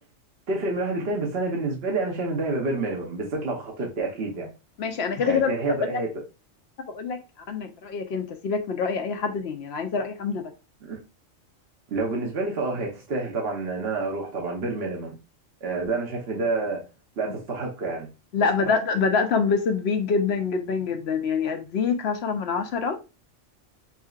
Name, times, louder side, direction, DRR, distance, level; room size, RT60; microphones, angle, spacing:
voice 1, 0.5-4.5 5.2-6.1 10.8-11.0 11.9-15.1 15.6-16.8 17.2-18.1 18.6-18.7, right 3 dB, 55° right, 1.0 m, -28 dB
voice 2, 4.8-6.0 6.9-7.2 7.5-10.4 18.3-23.0, left 5 dB, 60° left, 0.9 m, -25 dB
5.7 x 2.7 x 2.3 m
omnidirectional pair, 1.3 m